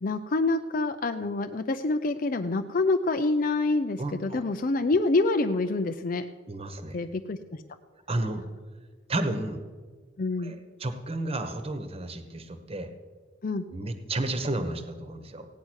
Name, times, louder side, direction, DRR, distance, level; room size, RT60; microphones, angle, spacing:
voice 1, 0.0-6.2 6.9-7.6 10.2-10.5 13.4-13.7, left 3 dB, 45° left, 7 dB, 0.5 m, -26 dB
voice 2, 4.0-4.4 6.5-7.0 8.1-8.4 9.1-9.6 10.4-12.9 13.7-15.5, right 2 dB, 30° right, 8 dB, 1.2 m, -32 dB
16.0 x 9.6 x 6.4 m, 1.5 s
head